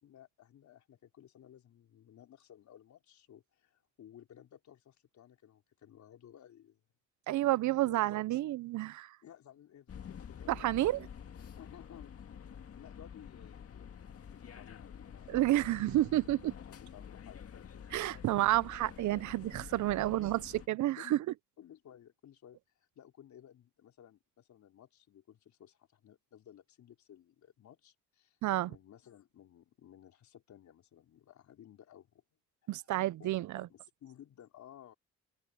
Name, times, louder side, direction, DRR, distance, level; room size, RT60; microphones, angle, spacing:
voice 1, 0.0-6.8 7.8-8.2 9.2-11.1 11.6-12.2 12.7-13.9 14.3-15.9 16.2-16.3 16.7-18.5 19.9-20.1 21.0-21.2 21.6-28.4 28.7-32.2 32.6-32.9 33.2-34.9, left 10 dB, 70° left, 4.6 m, -57 dB
voice 2, 7.3-9.2 10.5-11.1 15.3-16.5 17.9-21.2 28.4-28.7 32.7-33.7, right 15 dB, 70° right, 0.6 m, -30 dB
sound 1, 9.9-20.7, left 8 dB, 50° left, 1.9 m, -49 dB
open air
cardioid pair, 90°, 30 cm